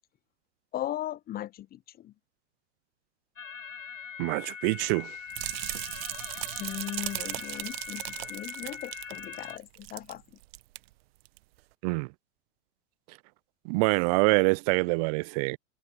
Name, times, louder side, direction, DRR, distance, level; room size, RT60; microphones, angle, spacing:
voice 1, 0.7-2.1 6.6-10.4, left 13 dB, 25° left, 1.0 m, -38 dB
sound 1, 3.4-9.6, left 7 dB, 90° left, 1.0 m, -42 dB
voice 2, 4.2-5.2 11.8-12.1 13.7-15.6, right 30 dB, 35° right, 0.4 m, -25 dB
sound 2, 5.3-10.2 10.4-10.8 11.2-11.4, right 20 dB, 50° right, 1.4 m, -37 dB
figure-of-eight pair, 100°, 37 cm